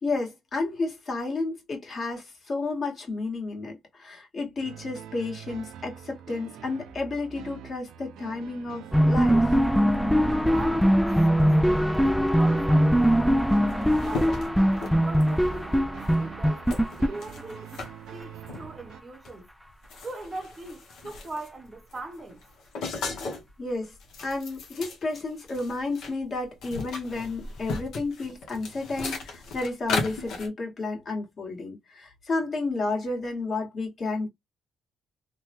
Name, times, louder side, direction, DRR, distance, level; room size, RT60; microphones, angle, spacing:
voice 1, 0.0-9.6 23.6-23.9 24.2-34.3, left 3 dB, 45° left, 1.6 m, -31 dB
sound 1, 4.6-19.0, right 9 dB, 85° right, 0.4 m, -45 dB
sound 2, 8.9-17.8, equal, ahead, 0.3 m, -21 dB
voice 2, 10.4-14.5 15.0-16.7 17.0-17.7 18.1-19.5 20.0-22.4, right 2 dB, 30° right, 0.7 m, -41 dB
sound 3, 13.2-13.3 13.5-15.5 16.0-16.2 16.7-17.9 18.5-18.7 19.2-19.4 19.7-21.6 21.9-23.5 23.9-26.1 26.4-30.5, left 3 dB, 75° left, 0.9 m, -36 dB
3.2 x 2.2 x 2.8 m
cardioid pair, 90°, 0 cm